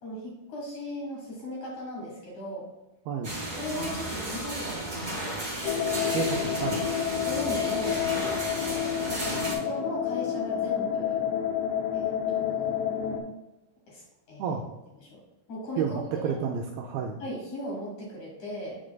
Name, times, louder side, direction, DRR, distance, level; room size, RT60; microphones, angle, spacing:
voice 1, 0.0-2.7 3.6-5.4 7.2-8.9 9.2-11.3 11.9-12.8 13.9-14.6 15.0-15.2 15.5-16.4 17.2-18.8, left 1 dB, 55° left, -3 dB, 2.5 m, -38 dB
voice 2, 3.1-3.4 6.1-6.9 14.4-14.6 15.8-17.2, right 7 dB, 85° right, 1 dB, 2.2 m, -31 dB
sound 1, 3.2-9.5, right 1 dB, 25° right, 1.4 m, -34 dB
sound 2, 5.6-13.2, left 9 dB, 90° left, 3.0 m, -29 dB
7.6 x 6.3 x 2.2 m, 1.0 s
omnidirectional pair, 4.8 m